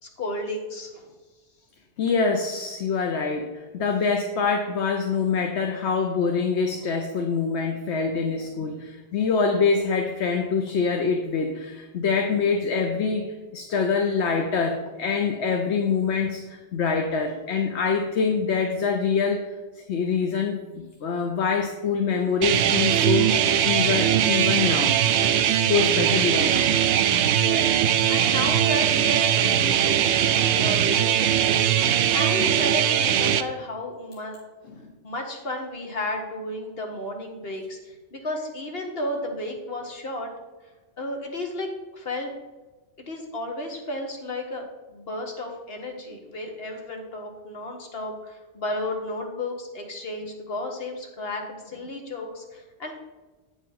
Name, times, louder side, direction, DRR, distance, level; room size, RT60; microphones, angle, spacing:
voice 1, 0.0-1.0 27.3-27.7 28.1-34.4 35.0-40.3 41.0-42.3 43.1-52.9, left 1 dB, 60° left, 2 dB, 1.6 m, -33 dB
voice 2, 2.0-13.2 13.5-19.4 19.8-23.4 23.6-25.0 25.7-26.8 34.8-34.9, left 5 dB, 75° left, 3 dB, 1.1 m, -25 dB
sound 1, 22.4-33.4, right 10 dB, 85° right, 0.9 m, -21 dB
8.9 x 5.1 x 5.7 m, 1.2 s
omnidirectional pair, 1.1 m